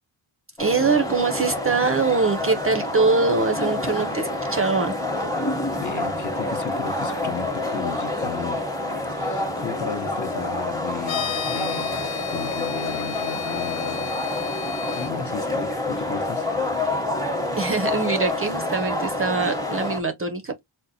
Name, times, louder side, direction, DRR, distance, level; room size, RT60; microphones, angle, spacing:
sound 1, 0.6-20.0, left 2 dB, 5° left, 0.8 m, -28 dB
voice 1, 0.6-4.9 17.6-20.6, right 4 dB, 30° right, 0.4 m, -23 dB
voice 2, 5.8-8.6 9.1-14.5 14.9-16.5, left 6 dB, 40° left, 0.7 m, -34 dB
sound 2, 11.0-15.1, left 9 dB, 80° left, 0.6 m, -33 dB
3.9 x 2.1 x 2.6 m
wide cardioid pair, 90°, 46 cm